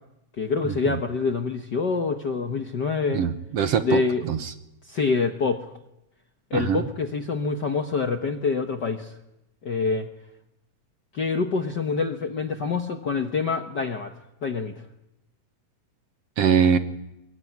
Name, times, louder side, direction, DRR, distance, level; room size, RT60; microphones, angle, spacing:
voice 1, 0.4-3.2 3.8-4.2 4.9-5.7 6.5-9.1 9.6-10.1 11.1-14.1 14.4-14.7, left 4 dB, 50° left, 5 dB, 1.3 m, -26 dB
voice 2, 3.1-4.5 6.5-6.8 16.4-16.8, right 7 dB, 65° right, 10 dB, 1.9 m, -22 dB
23.5 x 22.0 x 9.5 m, 0.88 s
omnidirectional pair, 3.4 m